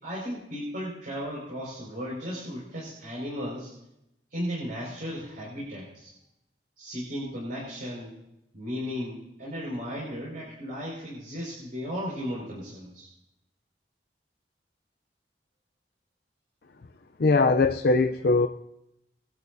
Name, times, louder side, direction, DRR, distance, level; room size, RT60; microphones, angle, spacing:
voice 1, 0.0-3.7 4.3-6.1 6.8-8.2 8.5-13.1, equal, 55° right, -7 dB, 5.3 m, -35 dB
voice 2, 17.2-18.5, left 3 dB, 60° left, 6 dB, 0.5 m, -21 dB
21.0 x 12.5 x 2.7 m, 0.83 s
head